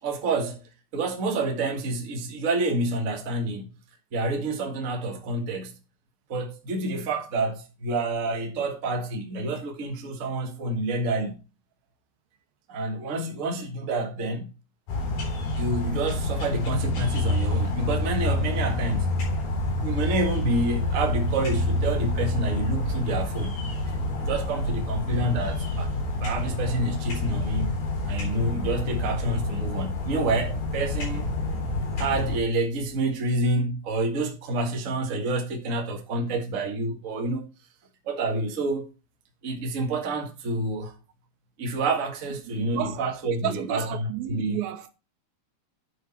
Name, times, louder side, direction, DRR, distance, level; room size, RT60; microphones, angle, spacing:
voice 1, 0.0-3.7 4.1-5.8 6.3-11.4 12.7-14.5 15.5-19.1 19.8-23.6 23.9-25.9 26.2-27.8 28.0-31.3 32.0-37.5 38.0-38.9 39.4-40.9 41.6-44.6, right 2 dB, 35° right, 1.3 m, -28 dB
sound 1, 14.9-32.4, left 2 dB, 90° left, 5.8 m, -28 dB
voice 2, 42.5-43.0 43.4-44.9, right 12 dB, 85° right, 2.8 m, -31 dB
9.5 x 6.9 x 4.2 m
omnidirectional pair, 4.1 m